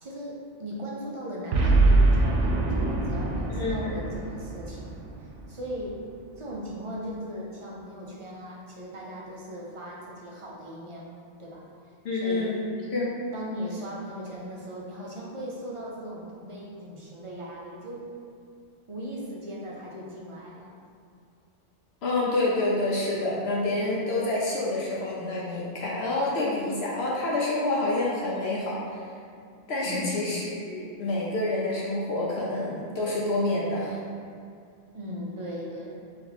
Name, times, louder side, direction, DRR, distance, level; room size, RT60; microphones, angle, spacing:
voice 1, 0.0-5.0 5.5-6.0 6.4-11.6 12.1-12.5 13.3-18.1 18.9-20.7 29.8-30.4 34.9-36.0, equal, 40° right, -4 dB, 0.5 m, -38 dB
Boom, 1.5-5.9, right 2 dB, 80° right, 0.9 m, -24 dB
voice 2, 3.5-4.0 12.0-13.1 22.0-28.8 29.7-34.0, left 2 dB, 65° left, -5 dB, 0.8 m, -28 dB
3.6 x 2.9 x 3.9 m, 2.3 s
omnidirectional pair, 1.2 m